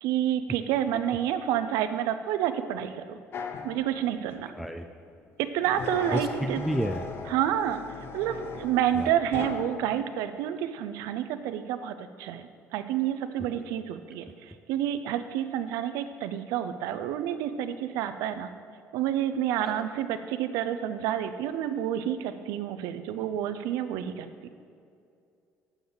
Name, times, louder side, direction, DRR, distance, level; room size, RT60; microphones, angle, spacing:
voice 1, 0.0-3.2 3.6-4.5 5.5-6.6 7.3-7.8 8.1-18.5 18.9-24.3, right 10 dB, 90° right, 10 dB, 0.5 m, -29 dB
sound 1, 3.3-4.6 5.6-10.0, left 4 dB, 45° left, 0.6 m, -38 dB
voice 2, 4.5-4.8 6.1-7.0 9.0-9.1 13.5-13.7 19.7-19.9, equal, ahead, 5 dB, 0.3 m, -31 dB
8.4 x 7.0 x 3.9 m, 2.5 s
cardioid pair, 125°, 6 cm